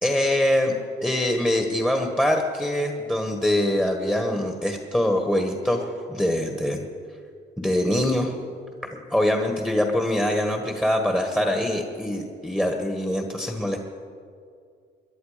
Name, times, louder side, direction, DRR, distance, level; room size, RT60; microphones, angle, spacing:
voice 1, 0.0-0.7 1.0-6.8 7.6-8.3 8.9-13.8, left 1 dB, 5° left, 3 dB, 1.5 m, -24 dB
22.5 x 11.0 x 5.1 m, 2.3 s
cardioid pair, 90°, 20 cm